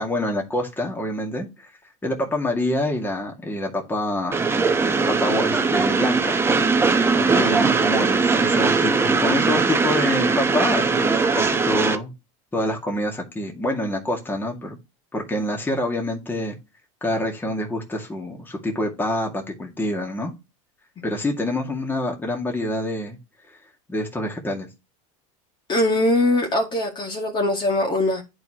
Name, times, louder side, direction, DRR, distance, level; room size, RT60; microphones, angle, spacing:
voice 1, 0.0-1.7 2.0-4.4 5.1-6.4 7.2-12.1 12.5-14.8 15.1-16.6 17.0-20.3 21.0-23.2 23.5-23.6 23.9-24.7, left 1 dB, 10° left, 2.2 m, -26 dB
Train, 4.3-12.0, right 4 dB, 15° right, 1.0 m, -20 dB
voice 2, 25.7-28.2, left 1 dB, 25° left, 2.1 m, -22 dB
10.5 x 4.8 x 3.0 m
supercardioid pair, 120°, 17 cm